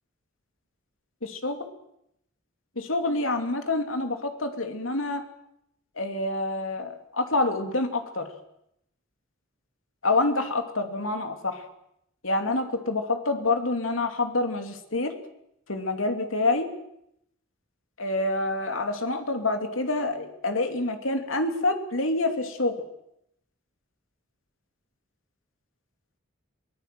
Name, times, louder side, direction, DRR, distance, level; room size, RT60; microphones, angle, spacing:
voice 1, 1.2-1.6 2.8-5.2 6.0-8.3 10.0-11.6 12.2-15.2 15.7-16.7 18.0-22.7, left 2 dB, 90° left, 6 dB, 2.9 m, -27 dB
23.0 x 19.0 x 7.7 m, 0.77 s
head